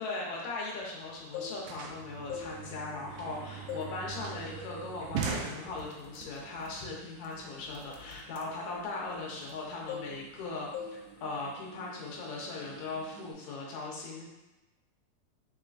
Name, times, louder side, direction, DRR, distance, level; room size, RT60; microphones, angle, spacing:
voice 1, 0.0-14.3, left 3 dB, 70° left, -3 dB, 2.0 m, -39 dB
sound 1, 0.7-0.8 1.0-6.2, right 5 dB, 90° right, 2.3 m, -40 dB
sound 2, 1.1-1.9 2.2-3.3 3.7-4.0 4.4-4.6 5.2-5.4 5.7-9.6 9.9-10.4 10.7-11.0 11.3-11.6, left 7 dB, 90° left, 2.3 m, -43 dB
sound 3, 2.5-13.3, right 3 dB, 70° right, 3.1 m, -53 dB
5.7 x 3.6 x 2.4 m, 1.0 s
omnidirectional pair, 3.9 m